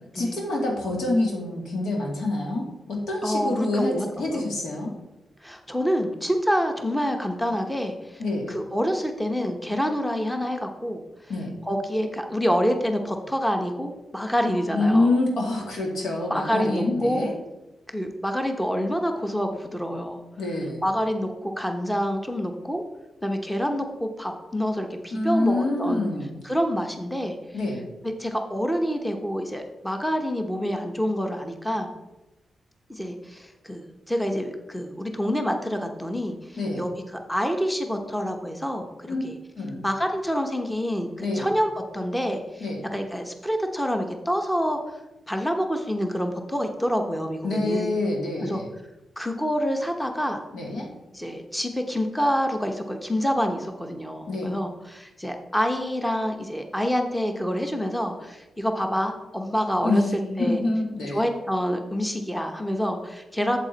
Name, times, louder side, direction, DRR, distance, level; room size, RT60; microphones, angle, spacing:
voice 1, 0.1-4.9 8.2-8.5 11.3-11.6 14.7-17.3 20.4-20.8 25.1-26.3 27.5-27.8 36.6-36.8 39.1-39.2 39.6-39.8 41.2-41.5 42.6-42.8 47.4-48.7 50.5-50.9 54.3-54.6 59.8-61.2, left 2 dB, 80° left, 0 dB, 2.3 m, -26 dB
voice 2, 3.2-4.4 5.4-8.2 8.5-11.0 11.6-15.1 16.3-17.3 17.9-20.2 20.8-22.8 23.2-26.1 26.4-27.4 28.0-31.9 32.9-36.9 37.3-39.4 39.8-44.8 45.3-47.9 48.4-48.6 49.2-50.4 51.1-60.0 60.4-60.6 61.1-63.6, equal, 5° left, 4 dB, 1.0 m, -27 dB
8.1 x 7.4 x 4.0 m, 1.0 s
cardioid pair, 85°, 0 cm